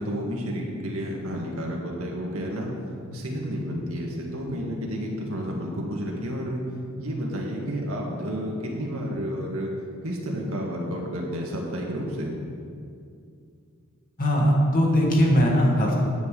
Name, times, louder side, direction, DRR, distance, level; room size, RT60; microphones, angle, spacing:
voice 1, 0.0-2.7 3.1-6.6 7.0-9.7 10.0-12.3, equal, 80° right, -1 dB, 1.9 m, -31 dB
voice 2, 14.2-15.9, equal, 40° left, -2 dB, 2.0 m, -20 dB
9.5 x 5.6 x 8.3 m, 2.4 s
head